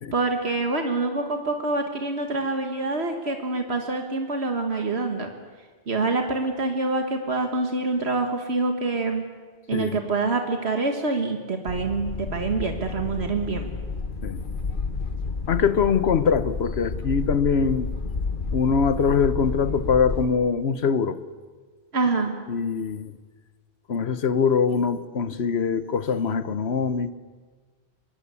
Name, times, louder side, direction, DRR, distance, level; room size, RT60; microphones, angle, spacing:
voice 1, 0.1-5.3 5.9-9.3 9.7-13.7 21.9-22.3, right 3 dB, 75° right, 1.8 m, -26 dB
sound 1, 11.7-20.2, left 4 dB, 55° left, 1.3 m, -31 dB
voice 2, 15.5-17.9 18.5-21.2 22.5-23.1 23.9-27.1, left 6 dB, 75° left, 1.2 m, -23 dB
24.0 x 20.5 x 8.3 m
omnidirectional pair, 1.1 m